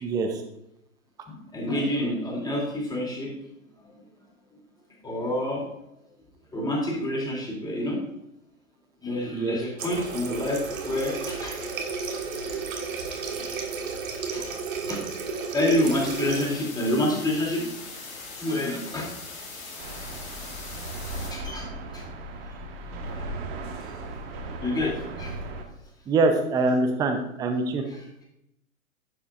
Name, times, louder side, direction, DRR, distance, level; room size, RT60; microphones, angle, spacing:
voice 1, 0.0-0.4 9.3-9.6 26.1-27.8, right 3 dB, 10° right, 6 dB, 0.5 m, -24 dB
voice 2, 1.3-3.3 5.0-5.6 6.5-8.0 9.0-11.6 12.3-12.4 13.4-13.7 14.0-14.5 14.9-15.0 15.3-17.7 18.4-19.1 21.3-21.7 21.9-22.0 23.0-23.5 23.8-23.9 24.6-25.3 27.9-28.2, left 1 dB, 10° left, -3 dB, 2.7 m, -28 dB
Water tap faucet, 9.8-16.5, right 4 dB, 70° right, 1.7 m, -33 dB
sound 1, 15.8-21.3, left 3 dB, 80° left, 3.0 m, -40 dB
sound 2, 19.8-25.6, right 2 dB, 45° right, 1.4 m, -36 dB
11.0 x 6.9 x 2.4 m, 0.80 s
hypercardioid pair, 120°, 42 cm